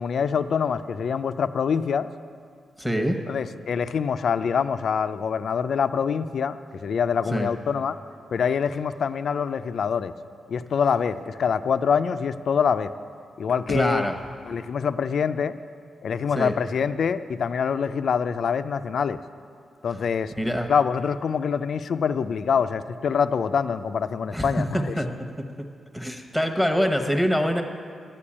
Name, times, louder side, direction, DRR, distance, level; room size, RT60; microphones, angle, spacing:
voice 1, 0.0-2.1 3.3-8.0 8.3-10.1 10.5-12.9 13.4-14.0 14.5-15.6 16.0-19.2 19.8-20.3 20.7-24.8, left 6 dB, 55° left, 11 dB, 0.4 m, -25 dB
voice 2, 2.8-3.2 7.3-7.5 13.7-14.2 16.3-16.5 20.4-20.7 24.3-25.3 25.9-27.6, equal, ahead, 5 dB, 1.0 m, -24 dB
12.0 x 8.5 x 8.6 m, 2.3 s
wide cardioid pair, 150°, 0 cm